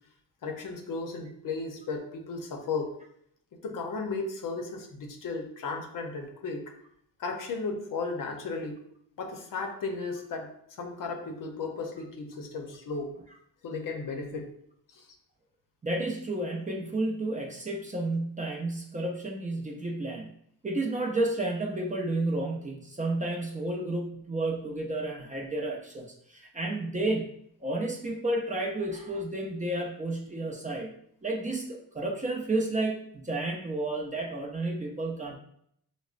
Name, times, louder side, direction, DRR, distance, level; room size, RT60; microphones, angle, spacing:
voice 1, 0.4-2.9 3.6-6.7 7.2-8.8 9.2-10.5 10.8-13.2 13.6-14.5 14.9-15.0, left 4 dB, 60° left, 3 dB, 0.7 m, -35 dB
voice 2, 15.8-20.4 20.6-27.3 27.6-30.9 31.2-35.4, right 2 dB, 20° right, 0 dB, 0.5 m, -31 dB
4.8 x 2.1 x 2.4 m, 0.68 s
cardioid pair, 100°, 38 cm